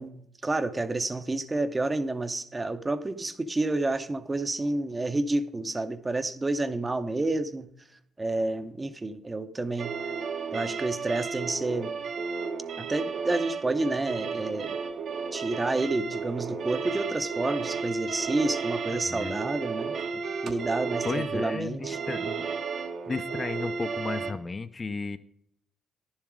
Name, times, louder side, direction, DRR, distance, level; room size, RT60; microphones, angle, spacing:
voice 1, 0.0-7.7 8.2-9.9 10.5-11.9 12.8-14.8 15.3-22.0, right 2 dB, 20° right, 10 dB, 0.7 m, -29 dB
sound 1, 9.8-24.3, right 5 dB, 65° right, 1.1 m, -33 dB
voice 2, 18.9-19.4 21.0-22.5 23.1-25.2, left 4 dB, 30° left, 10 dB, 0.5 m, -34 dB
10.5 x 7.3 x 4.8 m, 0.72 s
cardioid pair, 90°, 0 cm